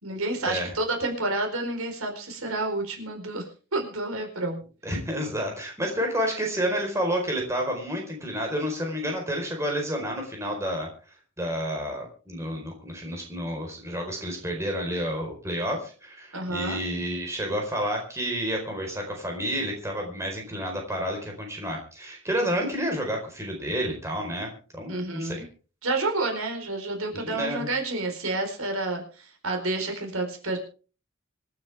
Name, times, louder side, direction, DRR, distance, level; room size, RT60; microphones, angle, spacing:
voice 1, 0.0-3.4 3.7-4.6 16.3-16.8 24.9-25.4 25.8-30.6, right 2 dB, 85° right, 3 dB, 4.4 m, -29 dB
voice 2, 4.8-25.4 27.1-27.7, equal, 15° right, 1 dB, 4.4 m, -30 dB
26.5 x 9.6 x 3.5 m, 0.37 s
head